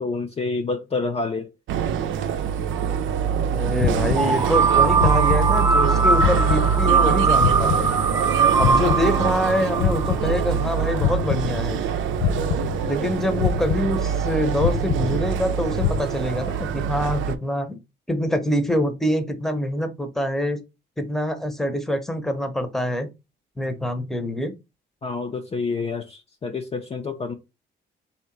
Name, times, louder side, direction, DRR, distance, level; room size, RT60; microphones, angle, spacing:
voice 1, 0.0-1.5 25.0-27.3, left 4 dB, 30° left, 0.6 m, -28 dB
sound 1, 1.7-17.3, right 8 dB, 75° right, 0.6 m, -25 dB
voice 2, 3.5-7.9 8.6-11.8 12.9-17.8 18.1-20.6 21.0-23.1 23.6-24.5, equal, ahead, 0.8 m, -25 dB
sound 2, 3.8-4.7 5.0-5.9 6.2-8.3 8.6-10.7 11.0-11.9 12.2-13.1 13.4-14.3 14.6-15.5 15.8-16.0, left 9 dB, 75° left, 0.4 m, -26 dB
sound 3, 4.1-10.9, right 4 dB, 15° right, 0.4 m, -21 dB
3.3 x 2.9 x 4.5 m
cardioid pair, 90°, 20 cm